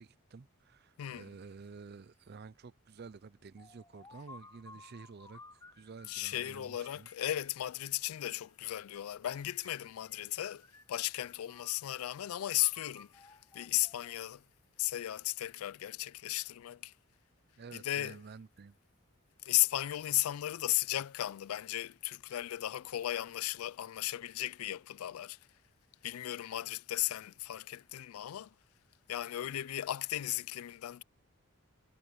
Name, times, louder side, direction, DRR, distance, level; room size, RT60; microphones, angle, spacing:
voice 1, 0.0-7.1 17.6-18.8, right 4 dB, 45° right, 0.4 m, -51 dB
voice 2, 1.0-1.3 6.1-14.4 14.8-16.9 17.7-18.2 19.4-25.4 26.0-28.5 29.1-31.0, left 14 dB, 75° left, 0.3 m, -35 dB
sound 1, 3.6-6.3 6.8-8.6 9.2-10.3 10.6-12.1 12.6-14.3, left 3 dB, 15° left, 0.5 m, -57 dB
head